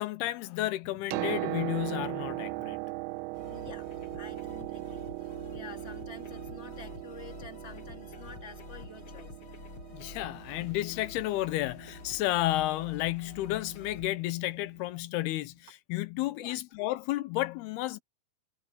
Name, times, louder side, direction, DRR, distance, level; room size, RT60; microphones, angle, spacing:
voice 1, 0.0-2.8 9.9-18.0, left 16 dB, 90° left, 2.8 m, -32 dB
Piano, 0.9-14.6 15.7-15.8, right 21 dB, 85° right, 2.5 m, -40 dB
sound 1, 3.3-14.1, left 5 dB, 60° left, 1.4 m, -48 dB
voice 2, 3.5-3.9 4.1-5.1 5.5-9.4 16.4-16.6, left 4 dB, 20° left, 2.7 m, -49 dB
omnidirectional pair, 4.6 m